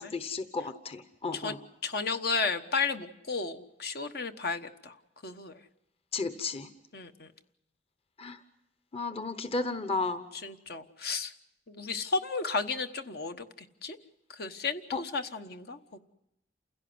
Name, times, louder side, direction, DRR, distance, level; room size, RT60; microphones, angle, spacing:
voice 1, 0.0-1.6 6.1-6.7 8.2-8.4 8.9-10.2 14.9-15.0, left 3 dB, 35° left, 11 dB, 1.1 m, -33 dB
voice 2, 1.8-4.9 5.2-5.6 6.9-7.3 10.4-11.3 11.7-13.4 13.8-14.0 14.3-16.0, left 4 dB, 60° left, 8 dB, 1.2 m, -33 dB
29.0 x 16.5 x 7.9 m, 0.85 s
head